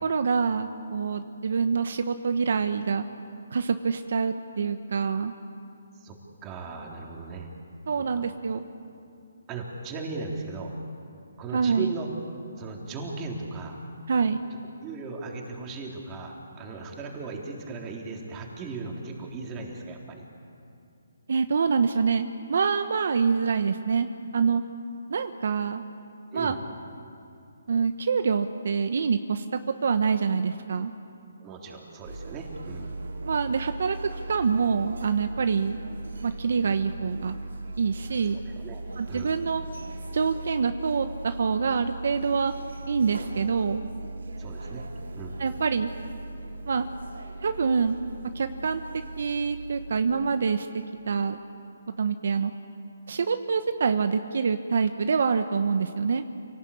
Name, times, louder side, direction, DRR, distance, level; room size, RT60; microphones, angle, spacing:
voice 1, 0.0-3.0 3.5-5.3 7.9-8.6 11.5-11.9 14.1-14.4 21.3-24.1 24.3-24.6 25.1-25.8 26.3-26.6 27.7-29.4 29.8-30.9 33.2-34.0 34.3-35.8 36.2-37.4 37.8-38.4 39.0-39.6 40.1-42.5 42.9-43.8 45.4-45.9 46.7-46.9 47.4-48.0 48.3-48.8 49.2-50.7 51.1-51.4 52.0-52.5 53.1-56.2, right 5 dB, 65° right, 8 dB, 1.1 m, -26 dB
voice 2, 6.4-7.5 8.0-8.2 9.5-10.7 11.4-12.1 12.6-13.8 14.8-20.2 26.3-26.6 31.4-32.9 38.3-38.8 39.1-39.4 44.4-44.9 45.1-45.4, right 4 dB, 20° right, 0 dB, 3.6 m, -37 dB
sound 1, 32.0-50.0, right 2 dB, 85° right, 3.8 m, -39 dB
28.0 x 18.0 x 8.6 m, 2.6 s
hypercardioid pair, 155°, 0 cm